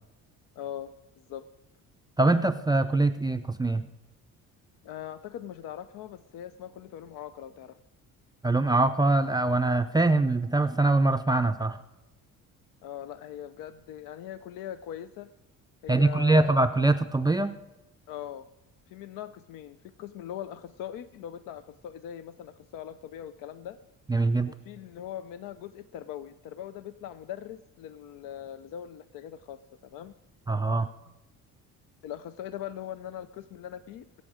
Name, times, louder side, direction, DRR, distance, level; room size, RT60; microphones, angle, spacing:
voice 1, 0.6-0.9 1.2-1.4 4.8-7.8 12.8-15.3 15.8-16.6 18.1-18.5 18.9-23.8 24.5-30.1 32.0-34.1, left 10 dB, 80° left, 13 dB, 0.6 m, -41 dB
voice 2, 2.2-3.8 8.4-11.8 15.9-17.5 24.1-24.5 30.5-30.9, right 2 dB, 15° right, 7 dB, 0.4 m, -23 dB
22.0 x 8.2 x 4.9 m, 0.96 s
cardioid pair, 130°, 32 cm